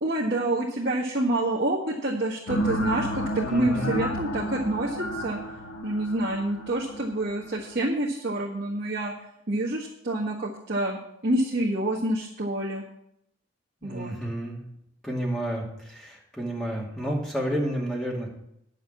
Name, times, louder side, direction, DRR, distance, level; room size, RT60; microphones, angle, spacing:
voice 1, 0.0-5.4 5.8-9.1 9.5-12.8 13.8-14.2, right 1 dB, 50° right, -5 dB, 1.5 m, -27 dB
sound 1, 2.5-7.8, equal, 90° left, 1.1 m, -32 dB
voice 2, 3.4-4.0 13.8-14.6 15.0-18.3, right 1 dB, 5° left, -3 dB, 2.4 m, -30 dB
10.5 x 6.6 x 7.4 m, 0.77 s
head